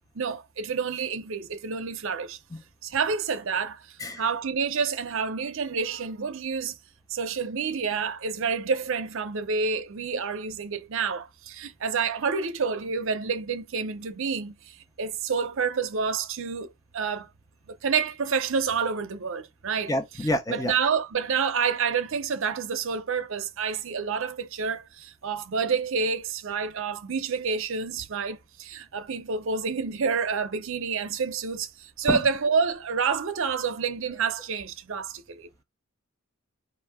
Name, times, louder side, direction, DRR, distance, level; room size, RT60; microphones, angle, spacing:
voice 1, 0.1-2.4 2.8-6.8 7.1-17.3 17.7-19.9 20.5-35.6, right 5 dB, 65° right, 0.6 m, -28 dB
voice 2, 19.9-20.8 32.1-32.2, left 1 dB, 15° left, 0.7 m, -27 dB
5.4 x 2.7 x 3.5 m
head